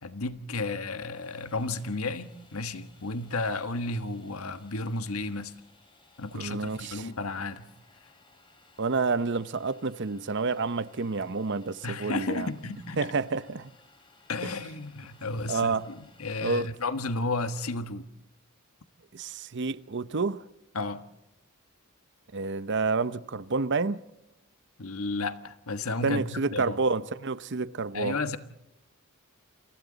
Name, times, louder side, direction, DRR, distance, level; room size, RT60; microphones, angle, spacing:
voice 1, 0.0-5.5 6.2-7.7 11.8-13.1 14.3-18.1 20.7-21.0 24.8-26.8 27.9-28.4, left 3 dB, 80° left, 1.4 m, -33 dB
Domestic sounds home sounds, 1.1-16.4, left 3 dB, 25° left, 5.5 m, -60 dB
voice 2, 6.3-7.1 8.8-12.5 13.0-13.7 14.4-14.5 15.5-15.8 16.4-16.7 19.1-20.4 22.3-24.0 26.0-28.2, right 4 dB, 55° right, 0.7 m, -29 dB
29.5 x 24.5 x 4.0 m
head